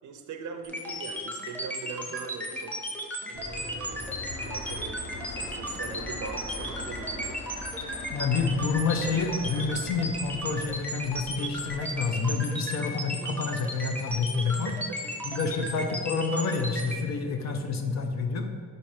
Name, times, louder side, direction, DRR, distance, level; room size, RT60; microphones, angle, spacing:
voice 1, 0.0-2.7 3.3-7.4 8.1-8.3 14.4-15.0, right 5 dB, 65° right, 6 dB, 0.6 m, -41 dB
sound 1, 0.6-17.0, equal, 5° left, 0.7 m, -35 dB
Fixed-wing aircraft airplane, 3.3-12.0, left 1 dB, 40° left, 1.1 m, -41 dB
voice 2, 8.1-14.7 15.2-18.5, left 4 dB, 55° left, 5 dB, 0.7 m, -28 dB
5.3 x 4.4 x 4.8 m, 2.2 s
cardioid pair, 145°, 32 cm